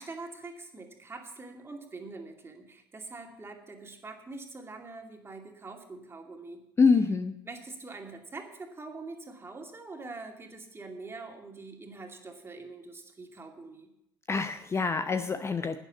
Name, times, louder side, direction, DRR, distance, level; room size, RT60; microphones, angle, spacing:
voice 1, 0.0-6.6 7.5-13.9, right 3 dB, 20° right, 3 dB, 2.5 m, -44 dB
voice 2, 6.8-7.3 14.3-15.8, left 4 dB, 25° left, 10 dB, 0.7 m, -25 dB
11.0 x 9.7 x 7.1 m, 0.82 s
figure-of-eight pair, 65°, 12 cm